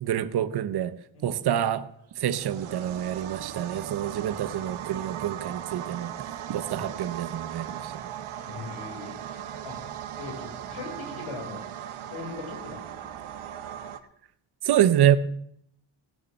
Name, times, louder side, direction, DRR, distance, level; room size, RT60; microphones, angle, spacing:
voice 1, 0.0-0.9 1.2-1.9 2.2-6.1 6.5-7.9 14.6-15.2, right 10 dB, 50° right, 0.7 m, -26 dB
sound 1, 2.1-14.0, right 10 dB, 85° right, 1.1 m, -38 dB
voice 2, 8.5-9.8 10.2-11.6 12.0-13.1, left 3 dB, 75° left, 4.6 m, -40 dB
17.0 x 6.6 x 6.7 m
wide cardioid pair, 160°, 49 cm